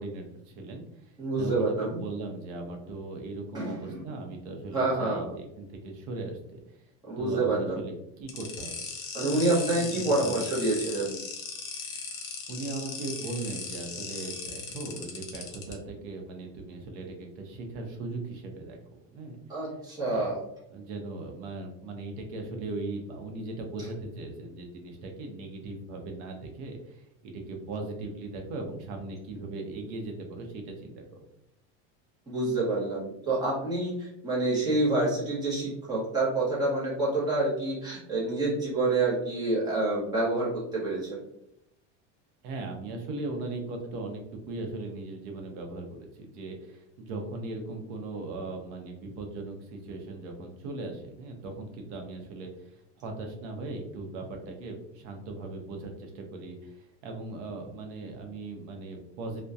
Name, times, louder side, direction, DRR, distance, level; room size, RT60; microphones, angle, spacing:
voice 1, 0.0-1.1 1.4-6.8 7.2-8.7 9.2-9.9 10.2-10.9 12.5-18.8 19.1-19.4 20.1-20.3 20.7-31.2 42.4-59.4, right 2 dB, 90° right, 3 dB, 0.7 m, -38 dB
voice 2, 1.2-2.0 3.5-4.0 4.7-5.3 7.1-7.8 9.1-11.2 19.5-20.4 32.3-41.2, right 2 dB, 10° right, -6 dB, 0.6 m, -27 dB
sound 1, 8.3-15.7, left 5 dB, 45° left, 0.6 m, -38 dB
2.6 x 2.1 x 2.3 m, 0.80 s
cardioid pair, 175°, 35 cm